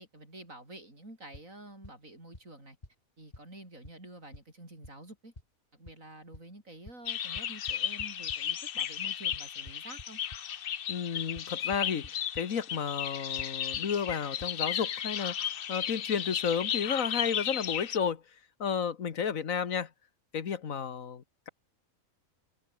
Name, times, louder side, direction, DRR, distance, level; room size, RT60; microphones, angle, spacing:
voice 1, 0.0-2.8 3.2-5.3 5.7-10.2, right 1 dB, 65° right, 8.6 m, -49 dB
sound 1, 1.3-1.4 1.8-1.9 2.3-2.4 2.8-2.9 3.3-3.4 3.8-3.9 4.3-4.4 4.8-4.9 5.4-5.5 5.9-6.0 6.3-6.4 6.9-7.0 7.4-8.4 9.3-10.4 11.4-11.5 11.7-12.1 12.3-12.4 13.4-13.5 13.7-13.8 14.1-14.2 14.4-14.5, left 1 dB, 30° left, 4.1 m, -46 dB
sound 2, 7.1-18.0, left 9 dB, 50° left, 0.7 m, -34 dB
voice 2, 10.9-18.2 18.6-19.9 20.3-21.5, left 7 dB, 70° left, 1.8 m, -32 dB
omnidirectional pair, 1.5 m